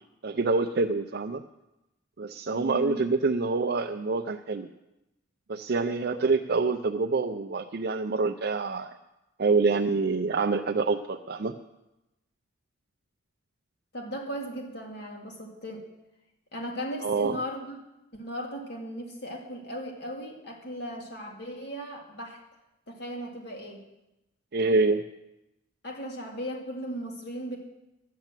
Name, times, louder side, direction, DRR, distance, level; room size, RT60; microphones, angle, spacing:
voice 1, 0.2-1.4 2.2-4.7 5.5-8.9 9.4-11.6 17.0-17.4 24.5-25.0, right 3 dB, 55° right, 4 dB, 0.5 m, -26 dB
voice 2, 2.5-3.1 13.9-15.8 16.5-17.8 18.1-22.4 22.9-23.8 25.8-27.6, equal, 55° left, 1 dB, 2.3 m, -37 dB
12.0 x 9.3 x 7.4 m, 0.94 s
head